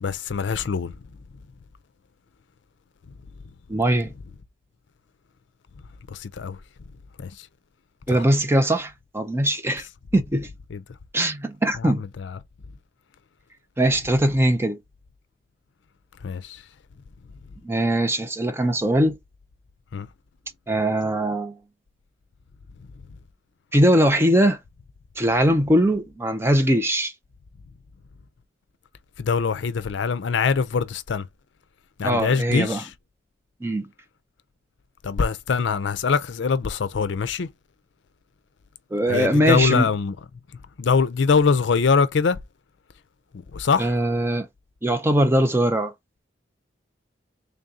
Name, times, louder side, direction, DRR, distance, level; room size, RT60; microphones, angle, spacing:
voice 1, 0.0-0.9 6.1-6.6 7.2-7.5 8.1-8.3 10.7-10.8 11.7-12.4 14.0-14.2 16.2-16.6 19.9-20.1 29.2-31.3 32.0-32.9 35.0-37.5 39.0-40.2 40.8-42.4 43.5-44.0, left 5 dB, 75° left, 0.5 m, -23 dB
voice 2, 3.7-4.1 8.1-9.9 10.1-10.5 11.1-12.0 13.8-14.8 17.6-19.2 20.7-21.6 23.7-24.6 25.2-27.1 32.0-32.8 33.6-33.9 38.9-39.9 43.8-44.5 44.8-45.9, right 1 dB, 15° right, 0.5 m, -21 dB
3.4 x 2.7 x 3.6 m
head